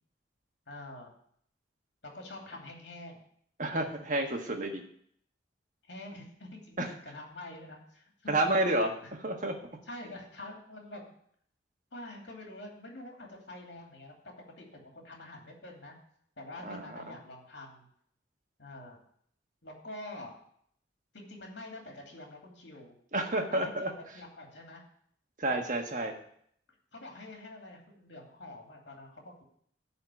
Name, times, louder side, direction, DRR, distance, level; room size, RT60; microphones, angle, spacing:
voice 1, 0.7-1.1 2.0-3.2 5.8-8.5 9.0-9.1 9.9-11.1 11.9-16.0 16.4-17.9 18.6-19.0 19.6-20.4 21.1-23.0 23.5-24.8 26.9-29.4, left 1 dB, 70° left, 1 dB, 2.7 m, -46 dB
voice 2, 3.6-4.8 6.8-6.9 8.3-8.9 9.2-9.5 16.6-17.0 23.1-23.9 25.4-26.1, right 1 dB, 45° right, 3 dB, 1.5 m, -30 dB
12.5 x 4.3 x 8.3 m, 0.66 s
head